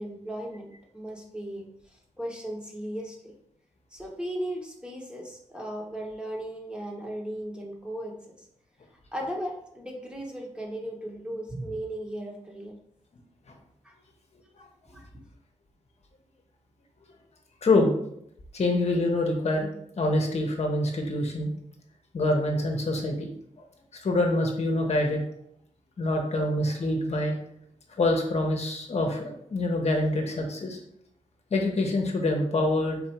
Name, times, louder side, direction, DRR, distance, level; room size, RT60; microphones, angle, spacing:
voice 1, 0.0-3.3 3.9-8.5 8.9-12.7 13.8-14.0 14.9-15.1, right 1 dB, 5° right, -1 dB, 1.0 m, -37 dB
voice 2, 17.6-17.9 18.5-19.7 20.0-21.5 22.1-23.3 23.9-25.2 26.0-27.4 28.0-30.8 31.5-33.0, left 2 dB, 55° left, 2 dB, 0.9 m, -25 dB
4.1 x 2.7 x 4.4 m, 0.72 s
cardioid pair, 80°, 13 cm